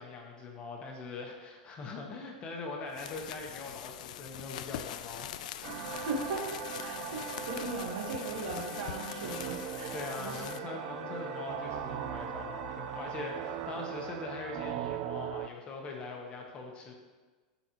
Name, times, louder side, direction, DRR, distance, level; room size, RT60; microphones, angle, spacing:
voice 1, 0.0-5.4 9.9-16.9, left 3 dB, 25° left, 1 dB, 1.0 m, -42 dB
sound 1, 2.9-10.6, left 11 dB, 80° left, 0.3 m, -43 dB
sound 2, 5.6-15.5, right 11 dB, 45° right, 0.3 m, -40 dB
sound 3, 5.8-14.8, left 3 dB, 50° left, 1.3 m, -48 dB
voice 2, 5.9-10.5, right 3 dB, 70° right, 1 dB, 1.5 m, -38 dB
12.0 x 4.1 x 3.0 m, 1.4 s
supercardioid pair, 155°, 4 cm